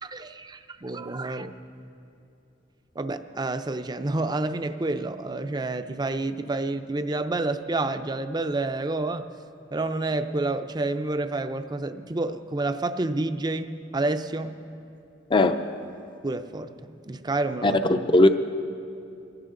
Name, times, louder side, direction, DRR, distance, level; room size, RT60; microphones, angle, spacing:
voice 1, 0.0-1.6 3.0-9.3 9.7-14.6 16.2-17.8, right 2 dB, 20° right, 10 dB, 0.5 m, -29 dB
voice 2, 17.6-18.3, left 2 dB, 25° left, 8 dB, 0.5 m, -18 dB
23.0 x 16.0 x 3.8 m, 2.6 s
head